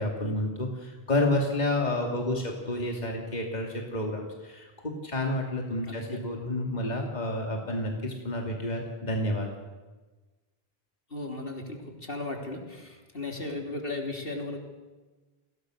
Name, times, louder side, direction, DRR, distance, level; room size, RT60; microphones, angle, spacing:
voice 1, 0.0-9.5, left 1 dB, 40° left, 1 dB, 2.9 m, -30 dB
voice 2, 5.9-6.2 11.1-14.6, left 2 dB, 60° left, 2 dB, 3.6 m, -36 dB
29.0 x 21.0 x 6.5 m, 1.2 s
omnidirectional pair, 1.1 m